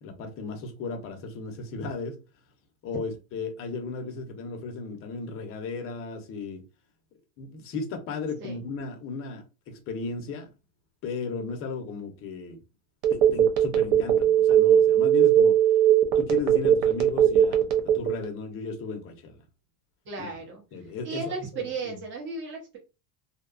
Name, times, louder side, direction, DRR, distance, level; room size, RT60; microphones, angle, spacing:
voice 1, 0.0-2.1 2.8-6.6 7.4-10.5 11.0-12.6 13.1-15.5 16.1-19.4 20.2-20.3 20.7-21.2 21.5-22.0, left 4 dB, 30° left, 0.5 m, -35 dB
Telephone, 13.0-18.3, right 10 dB, 80° right, 0.7 m, -19 dB
voice 2, 20.1-20.6 21.0-22.8, right 3 dB, 25° right, 0.8 m, -35 dB
2.7 x 2.1 x 2.4 m
cardioid pair, 155°, 45 cm